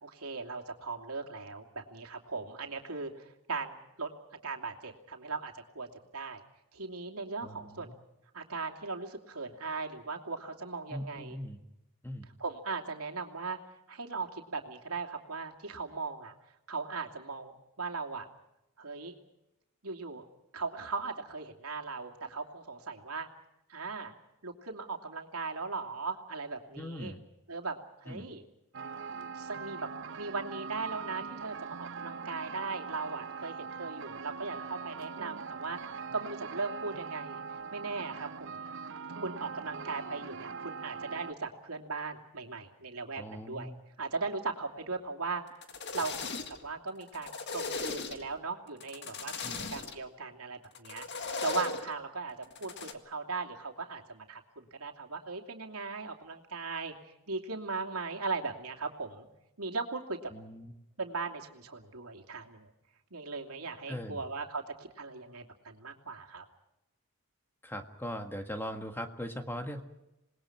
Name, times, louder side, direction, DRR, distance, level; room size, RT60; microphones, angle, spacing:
voice 1, 0.0-4.1 4.4-5.9 6.1-6.4 6.7-7.9 8.3-11.4 12.4-13.6 13.9-16.3 16.7-18.3 18.8-19.1 19.8-20.3 20.5-23.3 23.7-24.1 24.4-27.1 27.5-28.4 29.1-29.9 30.2-37.4 37.7-38.6 39.2-43.7 44.0-45.4 45.9-49.3 49.7-59.3 59.6-60.3 61.0-62.7 63.1-66.4, right 4 dB, 80° right, 3 dB, 2.7 m, -38 dB
voice 2, 7.4-8.0 10.9-11.6 12.0-12.3 26.7-27.2 28.1-28.3 43.2-43.8 49.4-49.7 60.3-60.7 63.9-64.2 67.6-69.8, equal, 10° left, 6 dB, 1.6 m, -40 dB
sound 1, 28.7-41.3, right 5 dB, 55° right, 0.8 m, -42 dB
sound 2, 45.5-46.7 47.0-48.4 48.8-50.0 50.8-51.9 52.4-52.9, left 4 dB, 50° left, 1.8 m, -37 dB
27.0 x 20.0 x 6.0 m, 0.92 s
head